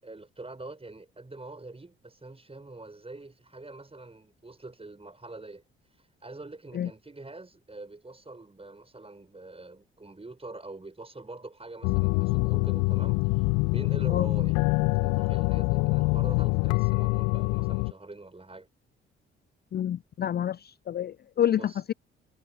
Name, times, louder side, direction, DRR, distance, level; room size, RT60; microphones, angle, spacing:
voice 1, 0.0-5.6 6.2-14.6 15.0-18.7 21.6-21.8, right 2 dB, 20° right, 6.4 m, -44 dB
sound 1, 11.8-17.9, left 28 dB, 70° left, 1.3 m, -25 dB
voice 2, 19.7-21.9, left 10 dB, 35° left, 0.5 m, -28 dB
figure-of-eight pair, 45°, 30 cm